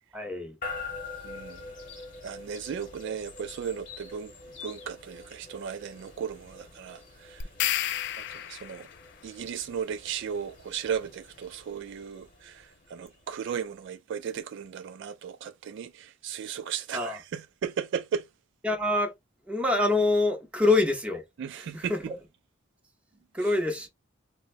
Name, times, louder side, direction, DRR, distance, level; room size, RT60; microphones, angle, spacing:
voice 1, 0.1-0.6 16.9-17.2 18.6-19.1 19.5-21.2 21.6-22.1 23.3-23.9, left 2 dB, 5° right, 0.7 m, -25 dB
sound 1, 0.6-13.6, left 4 dB, 45° left, 1.1 m, -45 dB
voice 2, 1.2-1.6 2.2-4.3 4.6-7.5 8.3-8.9 9.2-18.2 21.4-22.1, right 7 dB, 65° right, 0.3 m, -35 dB
sound 2, 7.4-9.0, left 12 dB, 60° left, 0.3 m, -31 dB
3.9 x 2.1 x 2.5 m
head